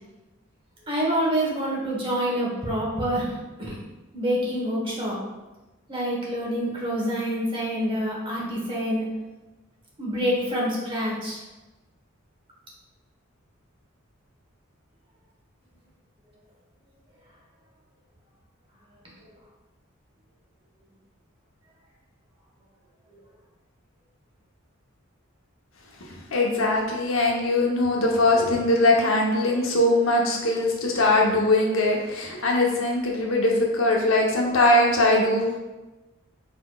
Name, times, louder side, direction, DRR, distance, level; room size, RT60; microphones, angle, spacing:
voice 1, 0.9-3.8 4.1-5.2 5.9-9.1 10.0-11.4, equal, 25° right, -4 dB, 1.1 m, -27 dB
voice 2, 26.3-35.6, left 2 dB, 75° left, -1 dB, 0.8 m, -21 dB
4.6 x 3.9 x 2.3 m, 1.1 s
head